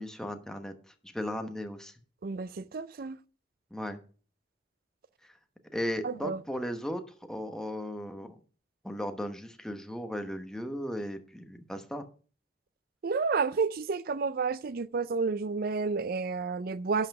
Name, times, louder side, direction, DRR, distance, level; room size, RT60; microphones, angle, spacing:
voice 1, 0.0-1.9 3.7-4.0 5.7-7.0 7.3-8.3 8.8-12.1, equal, 5° left, 1.1 m, -36 dB
voice 2, 2.2-3.2 6.0-6.4 13.0-17.1, right 4 dB, 55° right, 0.4 m, -30 dB
11.5 x 5.7 x 6.0 m
head